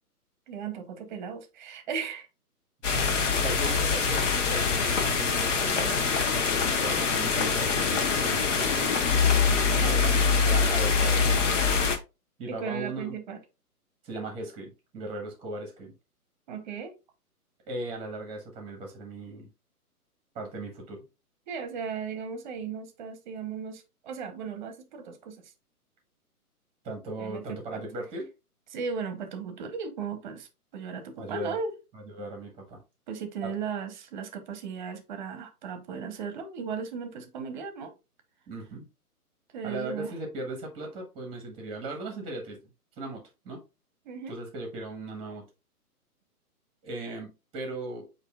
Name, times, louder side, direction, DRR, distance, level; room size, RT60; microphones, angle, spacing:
voice 1, 0.5-2.3 9.4-10.0 12.5-13.4 16.5-17.0 21.5-25.4 27.2-27.8 28.7-31.7 33.1-37.9 39.5-40.1 44.0-44.4, right 6 dB, 30° right, 0.9 m, -36 dB
sound 1, 2.8-12.0, left 5 dB, 50° left, 1.0 m, -24 dB
voice 2, 3.3-6.1 6.5-9.0 9.8-10.2 10.4-11.7 12.4-13.1 14.0-15.9 17.7-19.5 20.3-21.0 26.8-28.3 31.2-31.6 31.9-32.8 33.4-33.5 38.5-38.9 39.6-42.6 43.0-43.6 44.3-45.5 46.8-48.1, right 2 dB, 10° right, 1.1 m, -38 dB
8.2 x 2.8 x 2.3 m
hypercardioid pair, 140°, 46 cm